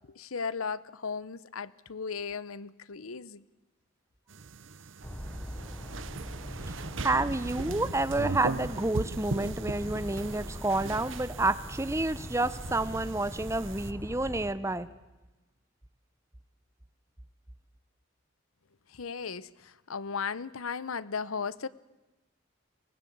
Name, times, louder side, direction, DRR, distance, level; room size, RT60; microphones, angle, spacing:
voice 1, 0.1-3.4 18.9-21.7, left 5 dB, 85° left, 19 dB, 0.8 m, -36 dB
sound 1, 4.3-13.9, right 3 dB, 65° right, 0.9 m, -39 dB
Bird vocalization bird call bird song, 5.0-14.5, equal, 10° left, 1.1 m, -41 dB
voice 2, 6.7-14.9, right 2 dB, 15° right, 14 dB, 0.8 m, -29 dB
24.0 x 19.5 x 8.6 m, 1.1 s
head